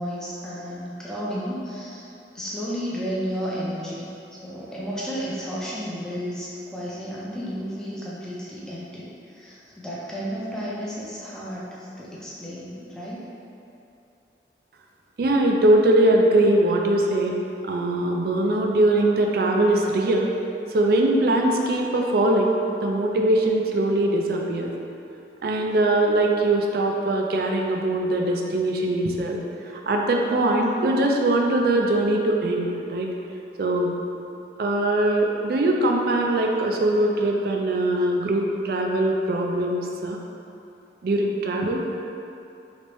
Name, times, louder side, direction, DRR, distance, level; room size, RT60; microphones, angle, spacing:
voice 1, 0.0-2.0 2.3-13.2, equal, 5° left, -8 dB, 0.5 m, -32 dB
voice 2, 15.2-17.4 17.6-20.3 20.7-22.5 22.8-24.7 25.4-29.4 29.6-33.1 33.6-34.0 34.6-40.2 41.0-41.9, right 1 dB, 60° right, 1 dB, 0.4 m, -21 dB
3.2 x 3.0 x 3.0 m, 2.8 s
head